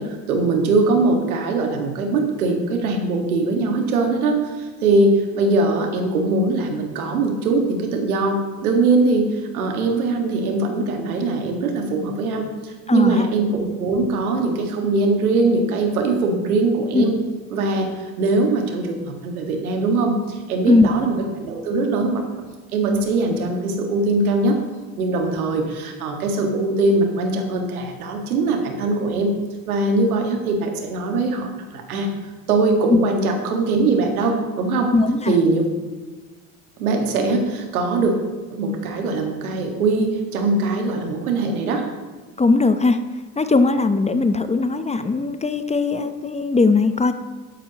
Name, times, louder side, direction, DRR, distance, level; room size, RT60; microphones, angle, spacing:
voice 1, 0.0-17.1 17.5-22.2 22.7-24.6 25.0-29.3 29.7-32.1 32.5-34.9 35.3-35.7 36.8-38.1 38.5-41.8, right 3 dB, 90° right, 3 dB, 1.8 m, -21 dB
voice 2, 12.9-13.2 16.9-17.0 20.7-20.9 32.9-33.0 34.9-35.3 42.4-43.0 43.4-47.1, left 3 dB, 15° left, 10 dB, 0.8 m, -18 dB
12.5 x 11.0 x 2.9 m, 1.3 s
hypercardioid pair, 75°, 42 cm